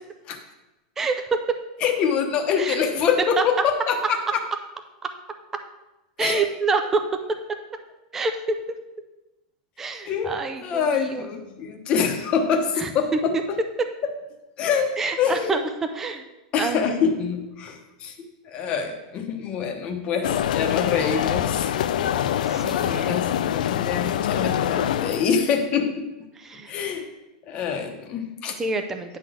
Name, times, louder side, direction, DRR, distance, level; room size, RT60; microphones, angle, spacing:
voice 1, 1.0-1.6 2.6-2.8 5.0-5.1 6.2-7.1 8.1-8.6 9.8-11.3 12.8-12.9 13.8-13.9 15.0-15.6 15.9-16.2 16.6-16.9 22.5-23.2 26.4-26.7 28.6-29.2, right 4 dB, 10° right, 6 dB, 0.4 m, -27 dB
voice 2, 1.8-4.2 6.2-6.4 10.0-10.3 10.6-13.6 14.6-14.9 15.2-15.6 16.5-21.7 23.1-26.1 26.7-27.1 27.5-28.6, left 6 dB, 25° left, 5 dB, 0.9 m, -25 dB
sound 1, 20.2-25.3, left 10 dB, 90° left, 0.4 m, -24 dB
9.8 x 4.0 x 6.2 m, 1.0 s
supercardioid pair, 175°, 4 cm